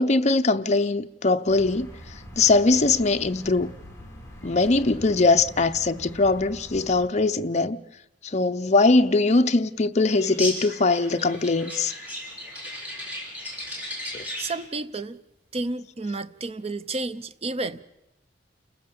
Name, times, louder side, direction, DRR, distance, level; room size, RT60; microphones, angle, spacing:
voice 1, 0.0-1.9 2.4-3.7 4.4-7.8 8.2-11.9 14.1-14.2, left 3 dB, 40° left, 0.7 m, -21 dB
sound 1, 1.5-7.1, equal, 15° left, 3.8 m, -43 dB
sound 2, 10.1-14.6, left 1 dB, 10° right, 6.4 m, -35 dB
voice 2, 14.4-15.2 15.5-17.8, right 2 dB, 35° right, 0.7 m, -31 dB
29.0 x 15.5 x 6.9 m
head